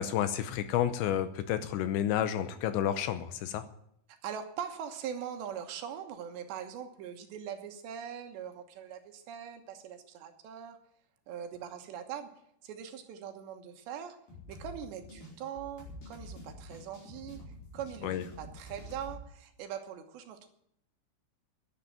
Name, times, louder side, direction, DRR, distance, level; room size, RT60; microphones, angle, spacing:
voice 1, 0.0-3.7 18.0-18.2, left 10 dB, 80° left, 12 dB, 2.8 m, -30 dB
voice 2, 4.1-10.8 11.3-12.3 12.6-14.2 14.5-17.4 17.7-18.1 18.4-20.5, right 8 dB, 70° right, 7 dB, 3.1 m, -41 dB
sound 1, 14.3-19.2, left 1 dB, 45° left, 6.1 m, -47 dB
11.5 x 10.5 x 8.9 m, 0.74 s
omnidirectional pair, 5.6 m